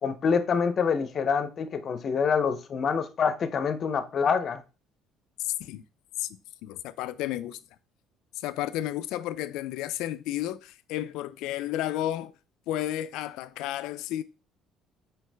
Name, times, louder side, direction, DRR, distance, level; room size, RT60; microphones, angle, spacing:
voice 1, 0.0-4.6, left 6 dB, 35° left, 0.7 m, -26 dB
voice 2, 5.4-5.8 6.2-6.3 6.6-7.6 8.4-12.3 12.7-14.2, left 13 dB, 80° left, 0.3 m, -32 dB
6.2 x 4.6 x 3.4 m
cardioid pair, 150°, 0 cm